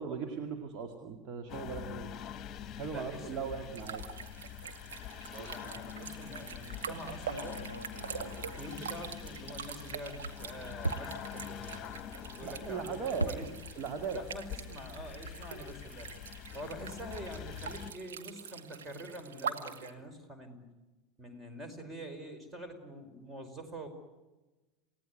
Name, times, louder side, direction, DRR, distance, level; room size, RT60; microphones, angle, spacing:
voice 1, 0.0-2.1 2.8-4.0 12.4-13.3 13.8-14.2, right 6 dB, 40° right, 4 dB, 2.3 m, -38 dB
sound 1, 1.5-17.9, left 10 dB, 35° left, 1.4 m, -45 dB
voice 2, 2.8-3.9 5.2-7.7 8.1-13.0 13.3-13.5 14.1-16.1 16.5-20.7 21.2-23.9, equal, 20° right, 8 dB, 5.2 m, -46 dB
sound 2, 3.7-19.9, right 7 dB, 65° right, 2.0 m, -44 dB
sound 3, 6.9-9.6 9.9-14.0 14.2-15.5, right 2 dB, 90° right, 0.9 m, -42 dB
29.0 x 17.0 x 9.7 m, 1.2 s
figure-of-eight pair, 80°, 0 cm